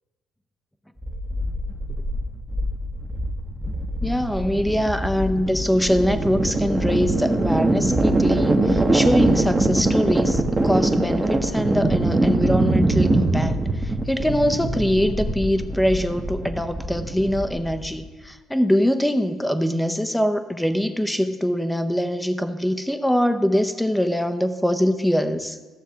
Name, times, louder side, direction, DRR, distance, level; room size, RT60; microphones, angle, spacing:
sound 1, 1.0-18.0, right 2 dB, 20° right, 0.9 m, -23 dB
voice 1, 4.0-25.6, equal, 5° left, 9 dB, 0.6 m, -23 dB
14.0 x 7.0 x 2.8 m, 1.3 s
cardioid pair, 90°, 0 cm